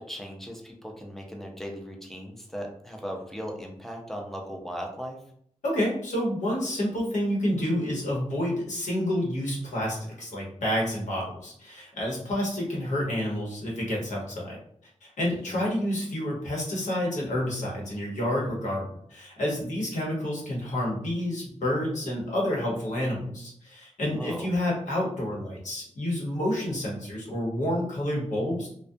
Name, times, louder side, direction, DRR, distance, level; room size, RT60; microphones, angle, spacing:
voice 1, 0.0-5.2 15.5-15.6 24.1-24.5, equal, 5° left, 1 dB, 0.5 m, -38 dB
voice 2, 5.6-14.6 15.0-28.7, left 1 dB, 85° left, -3 dB, 0.9 m, -29 dB
2.3 x 2.2 x 2.6 m, 0.65 s
wide cardioid pair, 100°, 12 cm